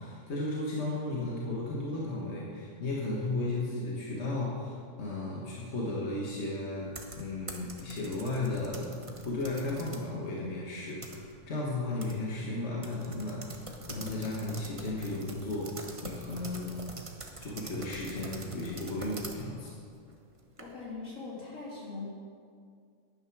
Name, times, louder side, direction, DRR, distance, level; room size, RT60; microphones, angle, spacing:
voice 1, 0.0-8.9 9.2-13.5 13.9-15.7 16.0-16.8 17.4-19.7, left 2 dB, 60° left, -4 dB, 1.7 m, -34 dB
sound 1, 6.8-10.1 10.5-11.6 12.0-12.1 12.4-12.5 12.8-20.9, right 2 dB, 25° right, 1.0 m, -44 dB
voice 2, 20.6-22.0, left 3 dB, 80° left, -6 dB, 3.5 m, -41 dB
10.5 x 9.4 x 6.0 m, 2.2 s
omnidirectional pair, 1.4 m